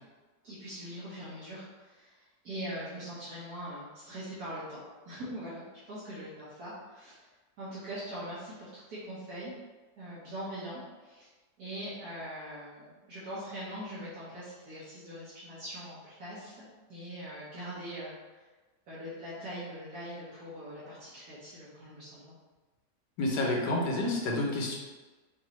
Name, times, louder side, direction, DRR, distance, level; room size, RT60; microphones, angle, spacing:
voice 1, 0.4-2.1 2.4-7.3 7.6-9.5 10.0-11.3 11.6-18.1 18.9-22.3, equal, 65° right, -9 dB, 1.5 m, -42 dB
voice 2, 23.2-24.8, left 2 dB, 85° left, -1 dB, 1.4 m, -29 dB
5.2 x 2.6 x 3.0 m, 1.3 s
omnidirectional pair, 1.8 m